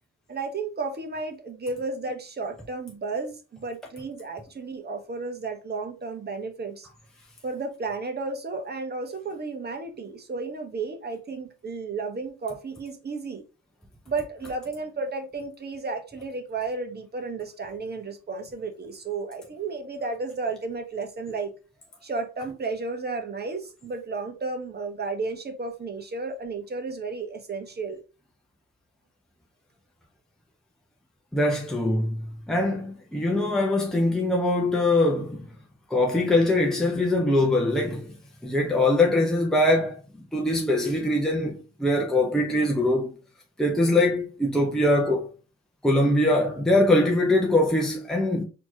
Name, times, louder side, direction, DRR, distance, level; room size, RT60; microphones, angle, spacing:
voice 1, 0.3-6.9 7.4-13.4 14.1-21.5 22.0-28.0, right 3 dB, 35° right, 1.1 m, -33 dB
voice 2, 31.3-35.4 35.9-38.1 38.4-43.1 43.6-45.3 45.8-48.4, left 1 dB, ahead, 0.8 m, -22 dB
4.2 x 3.0 x 2.8 m
cardioid pair, 90°, 30 cm